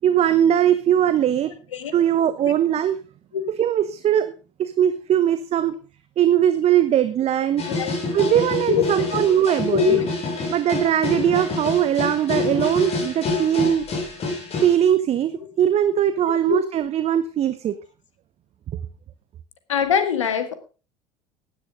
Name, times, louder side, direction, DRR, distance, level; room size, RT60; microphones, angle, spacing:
voice 1, 0.0-1.5 1.9-3.0 3.5-4.3 4.6-5.7 6.2-7.6 8.1-10.0 10.5-13.9 14.6-17.7, right 10 dB, 40° right, 12 dB, 1.1 m, -20 dB
sound 1, 7.6-14.7, left 3 dB, 40° left, 6.0 m, -27 dB
voice 2, 19.7-20.5, left 6 dB, 80° left, 10 dB, 1.9 m, -22 dB
15.5 x 10.5 x 3.7 m, 0.34 s
figure-of-eight pair, 65°, 16 cm